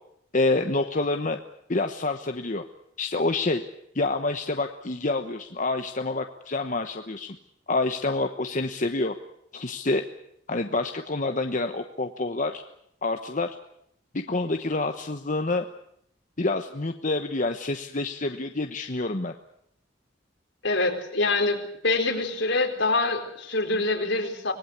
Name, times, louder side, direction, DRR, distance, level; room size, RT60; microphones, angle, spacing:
voice 1, 0.3-1.4 1.7-2.6 3.0-3.6 3.9-7.4 7.7-9.1 9.5-10.0 10.5-12.6 13.0-13.5 14.1-15.6 16.4-19.3, left 2 dB, 45° left, 6 dB, 1.1 m, -27 dB
voice 2, 20.6-24.5, left 2 dB, 75° left, 3 dB, 4.3 m, -25 dB
25.5 x 19.5 x 8.2 m, 0.75 s
head